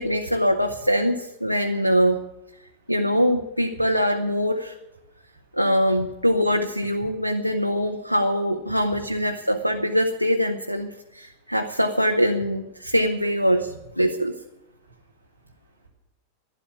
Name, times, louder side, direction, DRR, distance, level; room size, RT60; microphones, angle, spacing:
voice 1, 0.0-2.2 2.9-4.8 5.5-14.3, equal, 90° left, 5 dB, 0.9 m, -23 dB
voice 2, 14.8-15.9, right 5 dB, 75° right, -1 dB, 5.6 m, -50 dB
12.0 x 11.5 x 9.4 m, 0.93 s
figure-of-eight pair, 90°, 0 cm